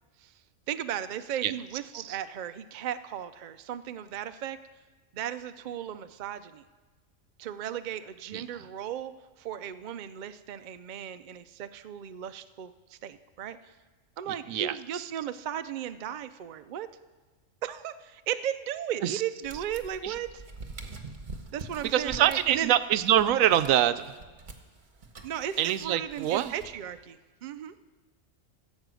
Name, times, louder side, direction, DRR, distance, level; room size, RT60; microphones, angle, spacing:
voice 1, 0.7-4.6 5.1-6.6 7.4-9.1 9.4-13.6 14.2-16.9 17.6-20.4 21.5-22.7 25.2-27.7, right 10 dB, 60° right, 11 dB, 0.4 m, -36 dB
voice 2, 8.3-8.7 14.3-15.1 19.0-19.2 20.0-20.1 21.8-24.1 25.6-26.5, right 11 dB, 85° right, 13 dB, 1.0 m, -25 dB
sound 1, 19.4-27.0, right 3 dB, 40° right, 1.2 m, -45 dB
15.5 x 7.4 x 6.2 m, 1.3 s
omnidirectional pair, 1.4 m